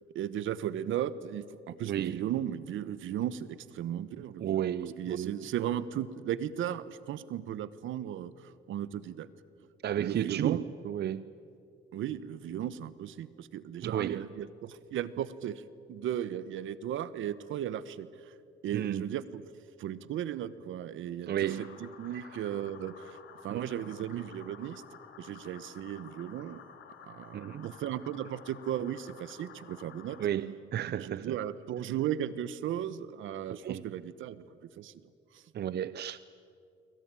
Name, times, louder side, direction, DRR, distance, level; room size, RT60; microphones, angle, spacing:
voice 1, 0.1-9.3 10.0-10.6 11.9-15.6 15.9-18.3 18.6-19.4 19.8-21.3 21.6-23.2 23.4-24.8 25.2-26.6 27.0-30.2 30.9-34.5 34.8-34.9 35.3-35.4, right 10 dB, 80° right, 16 dB, 1.2 m, -36 dB
voice 2, 1.9-2.3 4.4-5.3 9.8-11.2 13.8-14.3 18.7-19.1 21.3-21.8 22.2-22.3 23.5-23.6 27.3-27.7 30.2-31.3 33.5-33.8 35.5-36.2, right 10 dB, 55° right, 16 dB, 0.7 m, -33 dB
sound 1, 21.4-30.2, left 7 dB, 75° left, 3.5 m, -52 dB
27.0 x 24.0 x 9.1 m, 2.4 s
cardioid pair, 90°, 20 cm